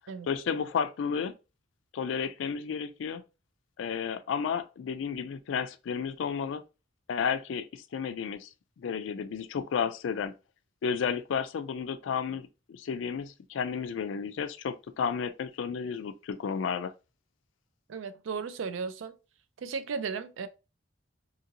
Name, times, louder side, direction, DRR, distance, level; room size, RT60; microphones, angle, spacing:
voice 1, 0.3-1.3 1.9-3.2 3.8-6.6 7.1-8.5 8.8-10.3 10.8-16.9, left 6 dB, 70° left, 0.3 m, -32 dB
voice 2, 17.9-19.2 19.6-20.5, right 5 dB, 75° right, 0.4 m, -35 dB
2.8 x 2.6 x 2.7 m
head